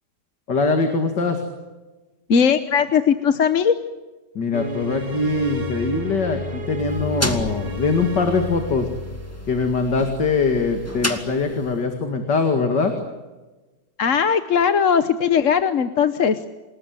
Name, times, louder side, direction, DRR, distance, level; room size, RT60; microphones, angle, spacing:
voice 1, 0.5-1.4 4.3-8.9 9.5-12.9, left 4 dB, 90° left, 5 dB, 2.9 m, -22 dB
voice 2, 2.3-3.7 14.0-16.4, left 7 dB, 55° left, 10 dB, 1.3 m, -19 dB
sound 1, 4.5-9.7, left 2 dB, 35° right, 3.0 m, -31 dB
sound 2, 6.8-11.9, equal, 10° left, 2.1 m, -32 dB
28.5 x 20.0 x 9.2 m, 1.2 s
omnidirectional pair, 1.8 m